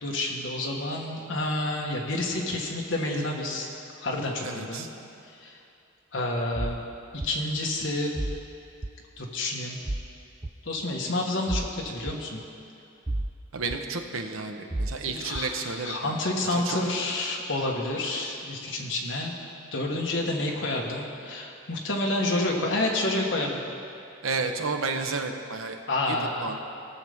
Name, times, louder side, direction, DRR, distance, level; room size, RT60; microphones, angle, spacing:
voice 1, 0.0-3.7 4.0-4.9 5.4-5.6 6.1-6.9 7.2-8.2 9.2-9.8 10.6-12.4 15.0-19.4 19.7-23.6 25.9-26.6, left 2 dB, 65° left, -1 dB, 1.4 m, -29 dB
voice 2, 4.4-4.9 13.5-16.1 16.5-16.8 24.2-25.8 26.1-26.6, right 4 dB, 90° right, 5 dB, 0.8 m, -32 dB
sound 1, 6.6-6.8 7.2-7.3 8.2-8.4 8.8-8.9 9.8-10.1 10.4-10.5 11.5-11.7 12.1-12.2 13.1-13.3 13.7-13.8 14.7-15.0 15.3-15.5, right 1 dB, 15° right, 0.3 m, -30 dB
18.0 x 6.6 x 3.6 m, 2.6 s
head